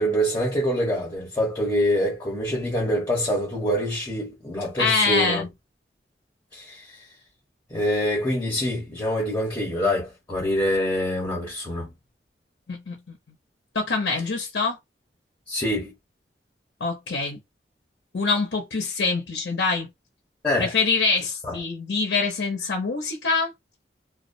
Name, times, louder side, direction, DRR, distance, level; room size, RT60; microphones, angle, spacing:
voice 1, 0.0-5.4 6.5-6.9 7.7-11.9 15.5-15.9 20.4-20.7 21.4-21.6, equal, 15° left, 1.0 m, -25 dB
voice 2, 4.8-5.5 12.7-13.2 13.7-14.8 16.8-17.4 18.1-19.9 20.6-23.5, left 4 dB, 80° left, 0.6 m, -25 dB
2.3 x 2.1 x 2.6 m
head